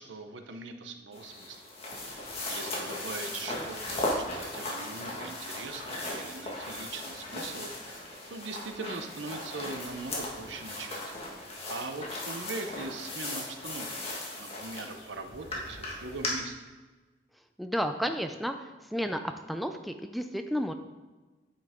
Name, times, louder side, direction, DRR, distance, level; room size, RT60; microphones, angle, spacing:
voice 1, 0.0-1.6 2.5-11.1 11.7-16.7, right 3 dB, 75° right, 6 dB, 0.8 m, -41 dB
sound 1, 1.1-16.3, left 1 dB, 35° left, 1.7 m, -37 dB
voice 2, 17.6-18.5 18.9-19.2 19.5-20.7, equal, ahead, 7 dB, 0.3 m, -31 dB
9.0 x 5.6 x 3.7 m, 1.2 s
head